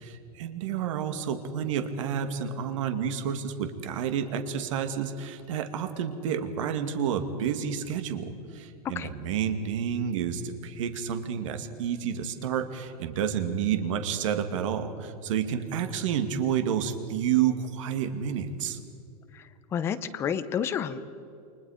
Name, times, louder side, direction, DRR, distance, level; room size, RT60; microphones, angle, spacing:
voice 1, 0.0-18.8, right 8 dB, 50° right, 8 dB, 2.2 m, -30 dB
voice 2, 19.7-21.0, left 8 dB, 10° left, 11 dB, 0.7 m, -30 dB
29.5 x 24.0 x 5.0 m, 2.6 s
supercardioid pair, 180°, 20 cm